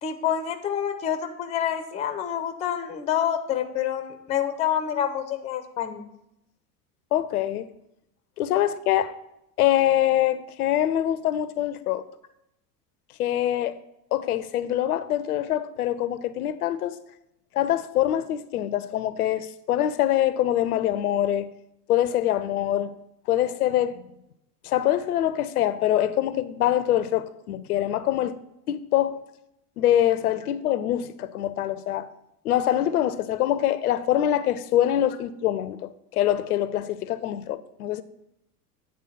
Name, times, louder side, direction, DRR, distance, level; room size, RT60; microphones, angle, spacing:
voice 1, 0.0-6.1, left 9 dB, 15° left, 0.4 m, -27 dB
voice 2, 7.1-7.7 8.4-9.1 9.6-12.1 13.2-13.8 14.1-17.0 17.5-21.5 21.9-23.0 23.3-24.0 24.6-28.4 28.7-29.2 29.8-32.1 32.4-38.0, left 12 dB, 65° left, 0.5 m, -24 dB
8.7 x 3.6 x 5.7 m
figure-of-eight pair, 80°, 49 cm